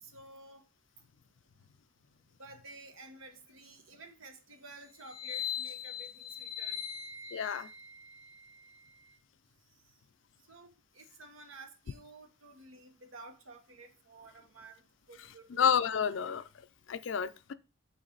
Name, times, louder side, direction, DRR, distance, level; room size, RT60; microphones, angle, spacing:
voice 1, 0.0-0.6 2.4-6.8 10.5-14.8 15.1-15.7, right 2 dB, 85° right, 1.0 m, -52 dB
sound 1, 5.0-9.1, left 8 dB, 30° left, 0.7 m, -41 dB
voice 2, 7.3-7.7 15.5-16.4 16.9-17.5, left 7 dB, 65° left, 0.4 m, -29 dB
8.2 x 3.2 x 3.9 m
head